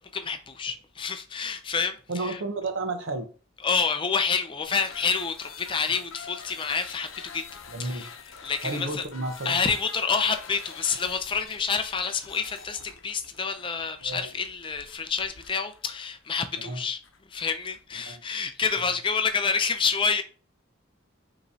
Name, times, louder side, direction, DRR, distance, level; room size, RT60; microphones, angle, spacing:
voice 1, 0.1-2.4 3.6-7.4 7.8-8.1 8.4-9.0 9.4-17.0 17.3-20.2, left 5 dB, 25° left, 0.4 m, -28 dB
voice 2, 2.1-3.3 7.7-8.1 8.6-9.6 14.0-14.3 16.6-16.8 18.1-18.2, right 2 dB, 75° right, 0.9 m, -32 dB
sound 1, 4.6-17.8, left 6 dB, 85° left, 0.7 m, -46 dB
5.5 x 3.0 x 2.7 m
head